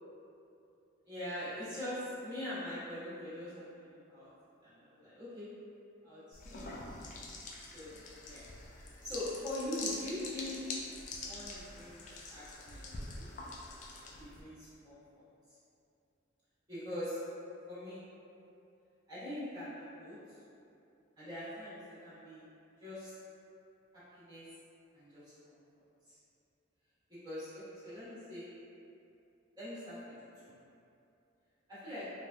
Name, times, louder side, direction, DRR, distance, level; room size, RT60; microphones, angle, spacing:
voice 1, 1.0-4.3 4.6-5.5 6.0-7.3 7.7-7.9 8.2-8.4 9.0-10.6 11.2-13.5 14.2-15.0 16.7-17.2 17.7-18.0 19.1-20.2 21.2-22.4 22.8-23.1 24.1-24.4 24.9-25.6 27.1-28.5 29.6-29.9 30.4-30.5 31.7-32.1, left 1 dB, 20° right, -14 dB, 1.1 m, -43 dB
sound 1, 6.3-14.4, left 3 dB, 40° left, 0.3 m, -45 dB
3.2 x 2.5 x 2.2 m, 2.7 s
head